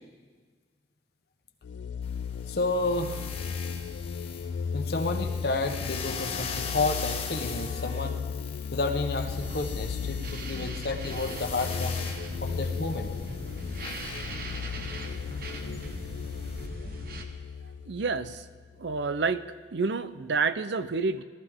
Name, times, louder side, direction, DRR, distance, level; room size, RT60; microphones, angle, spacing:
sound 1, 1.6-19.0, left 6 dB, 85° left, 0.3 m, -36 dB
sound 2, 2.0-16.7, left 6 dB, 35° left, 1.3 m, -41 dB
voice 1, 2.5-3.3 4.7-8.4 8.7-12.1 12.4-13.1, left 2 dB, 60° left, 5 dB, 1.1 m, -31 dB
sound 3, 9.2-17.2, right 2 dB, 55° right, 1.2 m, -40 dB
voice 2, 17.9-18.4 18.8-19.4 19.7-21.2, right 4 dB, 75° right, 14 dB, 0.6 m, -28 dB
18.5 x 13.5 x 3.7 m, 1.5 s
head